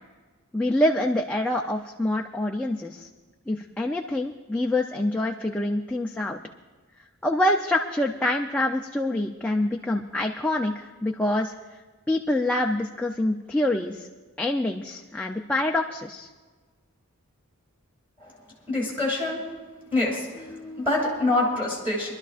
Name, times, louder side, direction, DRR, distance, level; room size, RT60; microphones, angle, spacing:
voice 1, 0.5-3.1 3.5-6.4 7.2-11.8 12.1-14.1 14.4-16.3, left 1 dB, 5° left, 1 dB, 0.5 m, -26 dB
voice 2, 18.7-19.4 19.9-22.1, left 2 dB, 10° right, -5 dB, 2.6 m, -26 dB
26.0 x 12.0 x 2.5 m, 1.3 s
head